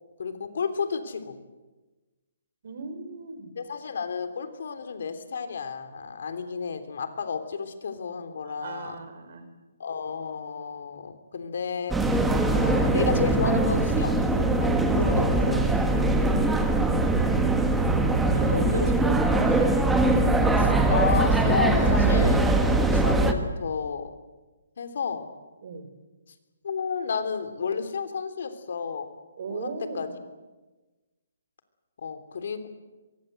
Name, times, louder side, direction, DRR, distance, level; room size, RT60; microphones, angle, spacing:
voice 1, 0.2-1.4 3.6-8.9 9.8-12.0 12.5-14.2 14.6-15.7 18.5-18.9 20.6-24.1 24.8-25.3 26.6-29.1 29.5-30.1 32.0-32.7, left 6 dB, 60° left, 9 dB, 3.4 m, -32 dB
voice 2, 2.6-3.5 8.4-9.5 18.3-19.7 25.6-25.9 29.4-30.1, right 5 dB, 50° right, 9 dB, 4.3 m, -37 dB
sound 1, 11.9-23.3, right 2 dB, 5° right, 1.5 m, -22 dB
24.5 x 23.0 x 8.0 m, 1.2 s
hypercardioid pair, 170°, 0 cm